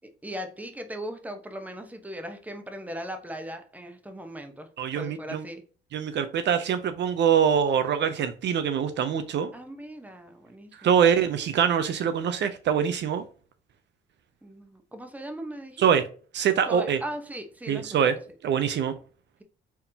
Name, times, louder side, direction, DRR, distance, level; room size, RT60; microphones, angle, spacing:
voice 1, 0.2-5.6 9.5-11.0 14.4-15.9 16.7-18.2, equal, 10° right, 0.9 m, -38 dB
voice 2, 4.8-5.4 5.9-9.5 10.8-13.2 15.8-16.1 16.3-17.0 17.7-18.2 18.4-19.0, right 8 dB, 65° right, 0.6 m, -24 dB
4.5 x 3.6 x 2.8 m
cardioid pair, 90°, 20 cm